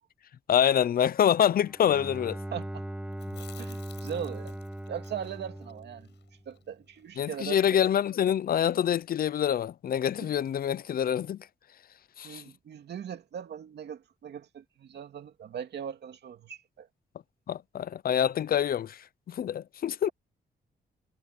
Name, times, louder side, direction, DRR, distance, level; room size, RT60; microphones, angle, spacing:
voice 1, 0.5-2.4 7.2-11.4 12.2-12.4 17.5-20.1, left 9 dB, 60° left, 0.5 m, -26 dB
Bowed string instrument, 1.6-6.6, right 1 dB, 5° right, 1.9 m, -39 dB
voice 2, 2.5-2.9 3.3-4.6 4.9-6.1 6.5-7.6 12.2-16.9, right 8 dB, 75° right, 2.4 m, -39 dB
Chewing mastication, 3.1-7.3 7.6-7.7 8.0-8.7, left 10 dB, 85° left, 7.8 m, -54 dB
wide cardioid pair, 125°, 18 cm